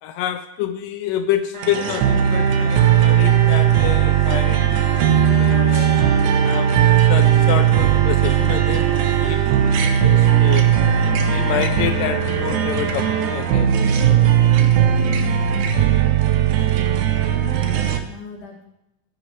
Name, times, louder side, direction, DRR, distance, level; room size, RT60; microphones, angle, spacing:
voice 1, 0.0-4.7 5.3-6.1 6.4-9.7 10.0-10.8 11.3-13.8, left 11 dB, 85° left, 8 dB, 2.2 m, -27 dB
sound 1, 1.5-13.4, right 2 dB, 45° right, 2.3 m, -31 dB
sound 2, 1.6-18.0, right 9 dB, 75° right, 2.2 m, -17 dB
voice 2, 15.0-15.6 16.4-18.6, left 3 dB, 65° left, -2 dB, 3.9 m, -38 dB
13.5 x 9.9 x 3.3 m, 0.90 s
omnidirectional pair, 3.8 m